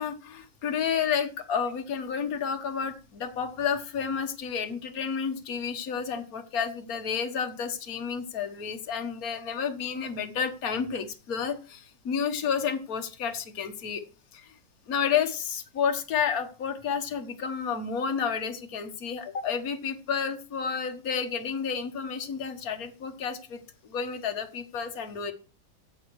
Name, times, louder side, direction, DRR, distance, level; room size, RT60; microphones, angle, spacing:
voice 1, 0.0-14.0 14.3-14.5 14.9-25.3, left 7 dB, 55° left, 6 dB, 1.7 m, -31 dB
14.5 x 7.3 x 4.8 m, 0.34 s
omnidirectional pair, 2.0 m